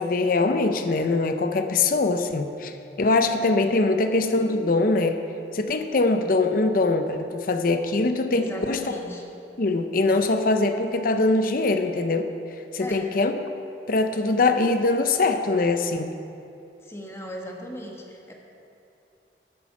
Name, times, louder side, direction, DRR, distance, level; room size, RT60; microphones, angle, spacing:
voice 1, 0.0-5.2 5.5-8.8 9.6-12.3 12.7-13.3 13.9-16.1, left 3 dB, 50° left, 7 dB, 0.6 m, -22 dB
voice 2, 8.3-9.2 12.8-13.1 16.8-18.3, equal, 15° left, 0 dB, 1.3 m, -37 dB
10.0 x 8.6 x 5.8 m, 2.7 s
head